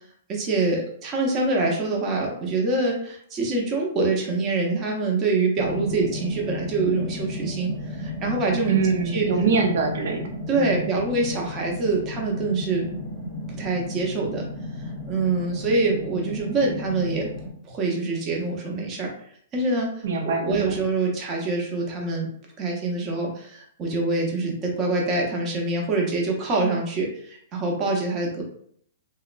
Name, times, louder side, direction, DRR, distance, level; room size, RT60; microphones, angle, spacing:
voice 1, 0.3-8.8 9.1-9.3 10.5-12.9 13.5-14.5 15.1-17.3 17.6-19.1 19.5-22.3 22.6-28.4, right 3 dB, 30° right, -1 dB, 0.8 m, -25 dB
sound 1, 5.6-17.5, left 2 dB, 20° left, 0.8 m, -34 dB
voice 2, 8.7-10.9 20.0-20.8, right 4 dB, 65° right, 3 dB, 0.6 m, -24 dB
2.8 x 2.1 x 2.4 m, 0.63 s
hypercardioid pair, 125°, 0 cm